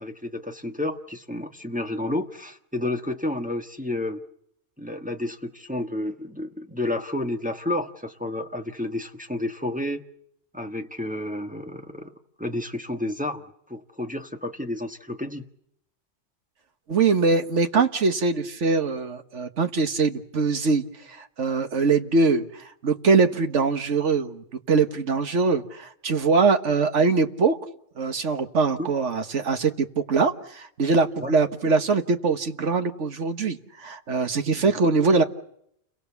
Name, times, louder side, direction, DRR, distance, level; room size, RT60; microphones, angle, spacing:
voice 1, 0.0-4.2 4.8-10.0 10.5-12.1 12.4-13.4 13.7-15.4 28.8-28.9 31.2-31.3 34.5-34.7, left 1 dB, 5° right, 4 dB, 1.3 m, -30 dB
voice 2, 16.9-27.6 28.0-35.2, right 4 dB, 65° right, 8 dB, 1.7 m, -23 dB
29.5 x 23.0 x 7.2 m, 0.72 s
omnidirectional pair, 1.3 m